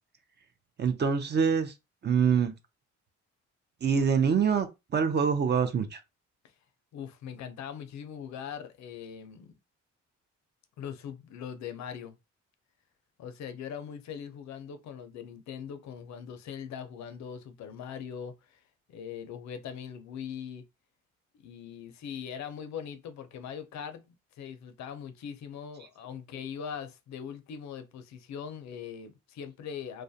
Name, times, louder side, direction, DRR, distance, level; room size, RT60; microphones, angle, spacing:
voice 1, 0.8-1.7 2.0-2.5 3.8-4.7 4.9-6.0, right 6 dB, 35° right, 0.5 m, -25 dB
voice 2, 6.9-9.5 10.8-12.2 13.2-18.6 18.9-20.6 21.3-30.0, left 7 dB, 65° left, 0.5 m, -41 dB
2.3 x 2.1 x 2.6 m
cardioid pair, 90°, 30 cm